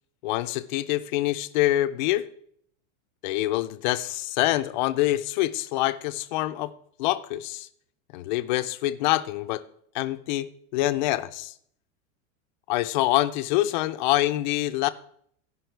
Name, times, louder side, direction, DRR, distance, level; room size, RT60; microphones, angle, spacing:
voice 1, 0.2-2.3 3.2-6.7 7.0-7.7 8.1-9.6 9.9-11.5 12.7-14.9, left 16 dB, 35° left, 0.4 m, -25 dB
15.5 x 5.7 x 4.5 m
supercardioid pair, 165°, 41 cm